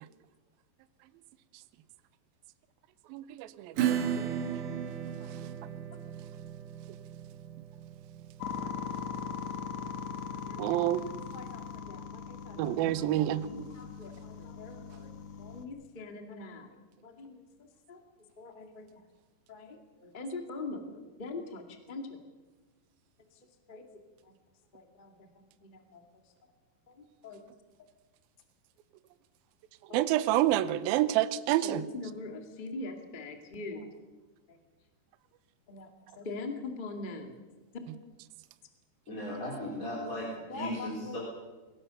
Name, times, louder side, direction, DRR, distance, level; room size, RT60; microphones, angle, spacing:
voice 1, 3.1-4.4 10.6-11.0 12.6-13.5 29.9-31.9 37.9-38.0, right 14 dB, 80° right, 13 dB, 2.2 m, -28 dB
Acoustic guitar / Strum, 3.8-11.0, right 9 dB, 65° right, 2.2 m, -36 dB
sound 1, 8.4-15.6, left 7 dB, 60° left, 1.9 m, -40 dB
voice 2, 8.6-9.0 10.4-10.6 11.3-13.0 13.5-15.1 15.4-16.7 17.0-17.4 17.9-18.0 18.4-18.8 19.5-22.1 23.7-23.9 24.7-25.1 25.7-26.0 27.0-27.4 29.9-30.0 31.6-33.8 35.7-35.9 36.2-37.3 39.1-39.2 40.5-41.2, left 3 dB, 40° left, 4 dB, 0.6 m, -42 dB
voice 3, 39.1-41.1, equal, 20° left, -3 dB, 3.5 m, -37 dB
23.0 x 17.5 x 7.0 m, 1.2 s
omnidirectional pair, 5.1 m